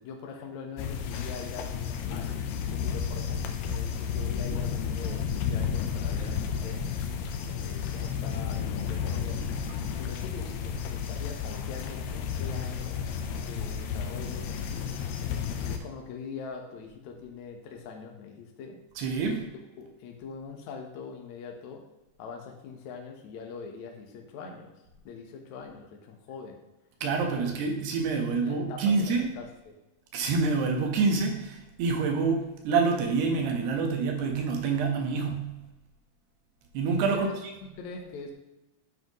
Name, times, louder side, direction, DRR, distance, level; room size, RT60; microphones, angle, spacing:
voice 1, 0.0-1.7 2.1-6.8 7.4-9.4 10.0-13.1 13.4-15.0 15.7-18.8 19.3-19.5 19.8-21.8 22.2-24.8 25.1-26.6 27.4-27.5 28.4-29.8 37.1-38.3, left 5 dB, 65° left, 2 dB, 2.0 m, -43 dB
sound 1, 0.8-15.8, left 7 dB, 90° left, 2.8 m, -32 dB
voice 2, 19.0-19.5 27.0-29.3 30.1-35.6 36.7-37.3, right 4 dB, 90° right, 2 dB, 3.5 m, -27 dB
9.9 x 8.0 x 3.1 m, 1.0 s
omnidirectional pair, 4.6 m